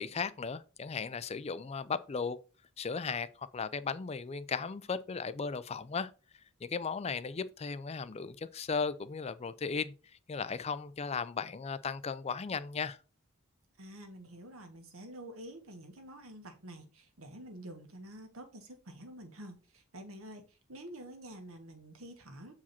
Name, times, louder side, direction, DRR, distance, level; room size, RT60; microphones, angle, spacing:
voice 1, 0.0-2.4 2.8-6.1 6.6-9.9 10.3-13.0, left 5 dB, 30° left, 0.4 m, -36 dB
voice 2, 13.8-22.5, right 1 dB, 80° right, 1.7 m, -48 dB
7.2 x 4.8 x 4.3 m
head